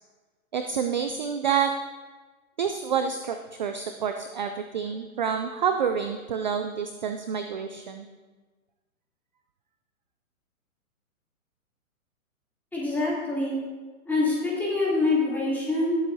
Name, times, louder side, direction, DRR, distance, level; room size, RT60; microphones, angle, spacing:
voice 1, 0.5-1.7 2.6-8.1, right 7 dB, 35° right, 7 dB, 0.4 m, -28 dB
voice 2, 12.7-13.6 14.0-16.0, left 2 dB, 5° left, -7 dB, 3.1 m, -25 dB
18.5 x 7.8 x 2.7 m, 1.3 s
hypercardioid pair, 145°, 43 cm